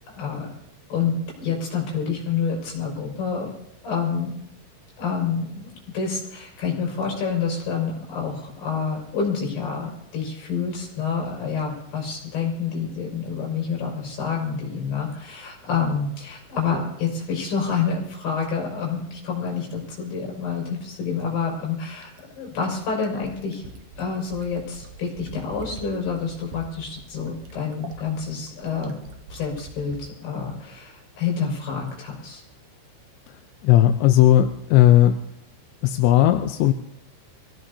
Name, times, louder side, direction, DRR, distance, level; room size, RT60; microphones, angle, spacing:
voice 1, 0.1-0.5 0.9-1.1 1.4-3.5 3.8-4.3 5.0-22.1 22.4-23.6 24.0-29.0 29.3-32.4, left 6 dB, 60° left, -1 dB, 7.4 m, -28 dB
Fill (with liquid), 22.0-30.1 31.5-31.6, right 4 dB, 70° right, 2.8 m, -44 dB
voice 2, 33.6-35.2 35.8-36.7, left 12 dB, 80° left, 6 dB, 2.8 m, -16 dB
25.0 x 17.0 x 2.8 m, 0.79 s
omnidirectional pair, 5.5 m